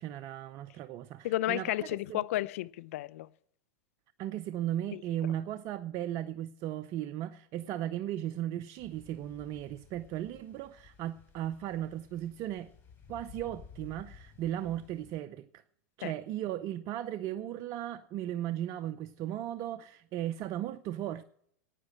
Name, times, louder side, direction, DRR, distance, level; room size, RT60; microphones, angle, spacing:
voice 1, 0.0-1.8 2.1-2.2 4.2-12.7 13.1-15.6 16.0-21.2, right 12 dB, 40° right, 0.6 m, -36 dB
voice 2, 1.2-3.3 16.0-16.1, left 15 dB, 65° left, 0.6 m, -32 dB
sound 1, 8.8-15.2, left 6 dB, 25° left, 5.1 m, -55 dB
10.0 x 9.1 x 8.5 m
hypercardioid pair, 115°, 8 cm